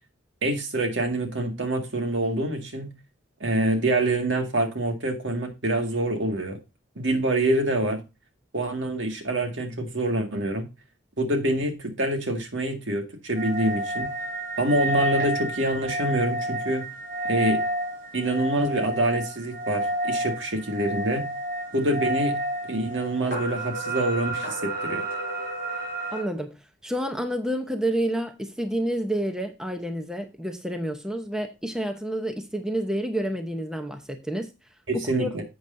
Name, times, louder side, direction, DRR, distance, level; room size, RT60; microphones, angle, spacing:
voice 1, 0.4-2.9 3.4-6.6 7.0-8.0 8.5-10.7 11.2-14.1 14.6-16.9 17.2-17.6 18.1-21.3 21.7-22.4 22.7-25.0 34.9-35.4, right 1 dB, 70° right, 2.0 m, -26 dB
sound 1, 13.3-26.2, right 1 dB, 45° right, 4.8 m, -30 dB
voice 2, 26.1-34.5 34.9-35.3, right 1 dB, 5° right, 0.8 m, -29 dB
11.0 x 7.8 x 2.7 m
head